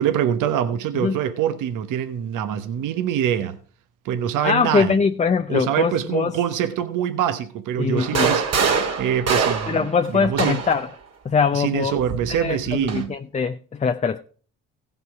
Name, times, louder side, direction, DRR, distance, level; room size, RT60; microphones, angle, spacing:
voice 1, 0.0-3.6 4.0-4.9 5.5-10.6 11.5-13.1, right 9 dB, 70° right, 1.0 m, -24 dB
voice 2, 4.4-6.3 7.8-8.3 9.7-10.9 11.2-12.0 12.3-14.2, left 5 dB, 20° left, 0.5 m, -22 dB
sound 1, 8.0-10.9 12.0-13.1, right 5 dB, 50° right, 1.8 m, -24 dB
16.0 x 5.7 x 4.6 m
supercardioid pair, 70°, 33 cm